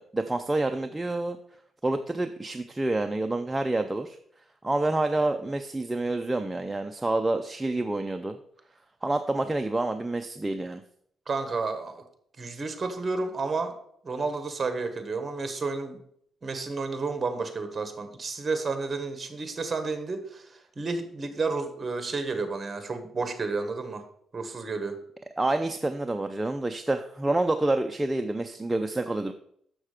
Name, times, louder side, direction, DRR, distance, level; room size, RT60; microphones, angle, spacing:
voice 1, 0.0-1.4 1.8-4.2 4.6-8.4 9.0-10.8 25.4-29.3, right 2 dB, 10° right, 6 dB, 0.4 m, -28 dB
voice 2, 11.3-12.0 12.4-13.7 14.0-16.0 16.4-24.0 24.3-24.9, right 4 dB, 30° right, 7 dB, 1.2 m, -31 dB
6.5 x 6.2 x 4.9 m, 0.67 s
cardioid pair, 120°, 0 cm